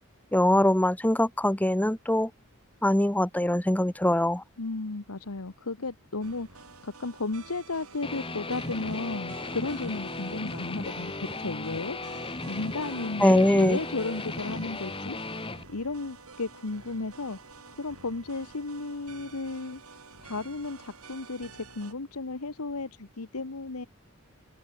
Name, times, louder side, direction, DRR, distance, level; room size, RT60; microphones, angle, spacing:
voice 1, 0.3-2.3 2.8-4.4 13.2-13.8, left 1 dB, 5° left, 1.0 m, -22 dB
voice 2, 4.6-12.0 12.5-15.4 15.7-17.4 17.8-19.8 20.2-23.9, left 3 dB, 90° left, 1.3 m, -34 dB
sound 1, 6.2-21.9, right 5 dB, 85° right, 4.3 m, -50 dB
Guitar, 8.0-15.6, left 2 dB, 25° left, 3.0 m, -36 dB
head